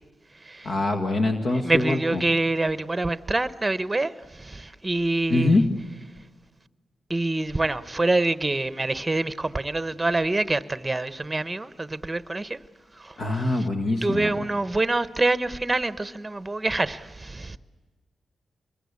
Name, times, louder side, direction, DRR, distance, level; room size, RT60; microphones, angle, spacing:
voice 1, 0.6-2.2 5.3-5.7 13.2-14.5, left 2 dB, 60° left, 1.8 m, -24 dB
voice 2, 1.6-4.1 4.4-5.6 7.1-12.6 13.0-13.5 14.0-17.6, right 2 dB, 15° right, 0.9 m, -26 dB
25.5 x 22.0 x 8.4 m
cardioid pair, 95°, 0 cm